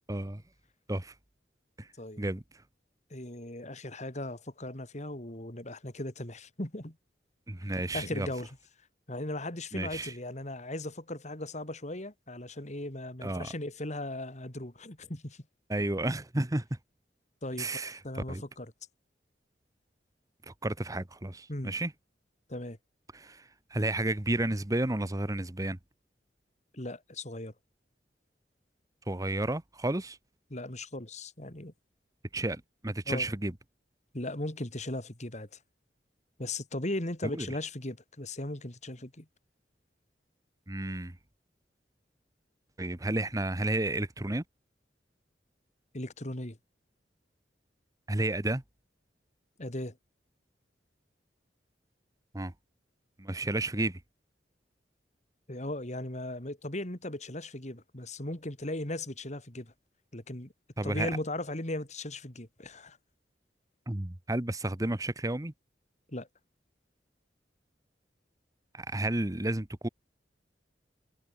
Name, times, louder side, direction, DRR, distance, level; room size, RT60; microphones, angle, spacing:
voice 1, 0.1-0.4 0.9-1.1 1.8-1.9 2.2-2.4 7.5-8.3 9.7-10.1 13.2-13.5 15.7-16.8 17.6-18.0 18.3-18.4 20.5-21.9 23.1-23.4 23.7-25.8 29.1-30.2 32.3-33.5 37.3-37.5 40.7-41.2 42.8-44.4 48.1-48.6 52.3-52.5 53.2-54.0 60.8-61.1 63.9-65.5 68.7-69.9, right 1 dB, 20° right, 1.1 m, -32 dB
voice 2, 3.1-7.0 7.9-8.5 9.1-15.4 17.4-18.7 21.5-21.7 22.5-22.8 26.7-27.5 30.5-31.7 33.1-33.3 34.1-35.6 36.4-39.3 45.9-46.6 49.6-50.0 55.5-59.7 60.1-60.5 60.8-63.0 66.1-66.3, left 1 dB, 40° left, 3.6 m, -38 dB
head